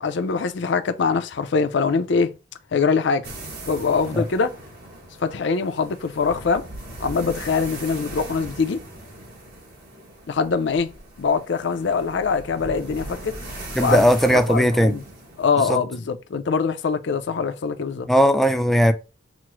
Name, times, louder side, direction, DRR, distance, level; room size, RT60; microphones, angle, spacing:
voice 1, 0.0-2.3 2.7-3.3 3.7-4.5 5.2-6.7 7.0-8.8 10.3-10.9 11.2-13.3 13.8-14.0 14.3-15.0 15.4-18.1, left 5 dB, 65° left, 0.4 m, -23 dB
sound 1, 3.2-15.6, right 1 dB, 55° right, 1.1 m, -39 dB
voice 2, 13.7-15.0 15.7-15.8 18.1-18.9, equal, ahead, 0.3 m, -17 dB
6.0 x 2.0 x 3.0 m
head